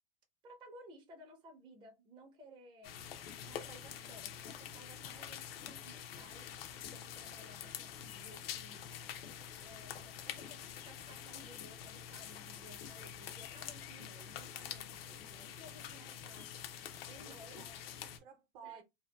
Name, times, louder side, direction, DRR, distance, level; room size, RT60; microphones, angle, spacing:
voice 1, 0.4-3.0 3.4-6.5 6.9-8.9 9.6-16.5 17.1-17.7 18.6-18.8, equal, 15° right, 0.5 m, -57 dB
sound 1, 2.8-18.2, left 9 dB, 80° left, 0.6 m, -47 dB
voice 2, 17.2-18.8, right 7 dB, 55° right, 0.7 m, -55 dB
2.7 x 2.1 x 2.2 m
supercardioid pair, 135°, 29 cm